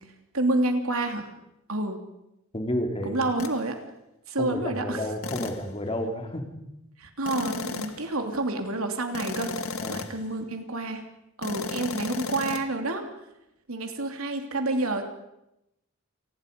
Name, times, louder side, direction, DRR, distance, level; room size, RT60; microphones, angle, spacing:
voice 1, 0.3-1.3 1.7-2.0 3.0-3.8 4.3-5.1 7.0-11.0 11.4-13.0 13.7-15.1, right 2 dB, 80° right, 5 dB, 2.9 m, -28 dB
voice 2, 2.5-3.2 4.4-6.4 9.8-10.0, left 1 dB, 25° left, 4 dB, 3.0 m, -30 dB
sound 1, 3.4-3.6 5.2-5.7 7.3-8.1 9.1-10.3 11.4-12.6, left 4 dB, 75° left, 1.8 m, -34 dB
28.5 x 19.5 x 5.3 m, 0.87 s
head